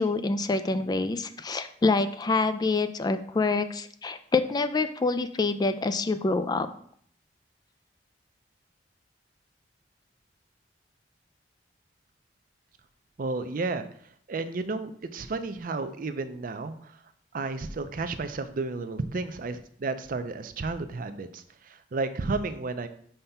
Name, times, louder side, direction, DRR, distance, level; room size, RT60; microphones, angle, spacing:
voice 1, 0.0-6.7, left 3 dB, 25° left, 10 dB, 0.3 m, -26 dB
voice 2, 13.2-13.9 14.3-16.9 17.3-22.9, right 3 dB, 50° right, 10 dB, 0.5 m, -32 dB
5.7 x 3.4 x 5.5 m, 0.62 s
head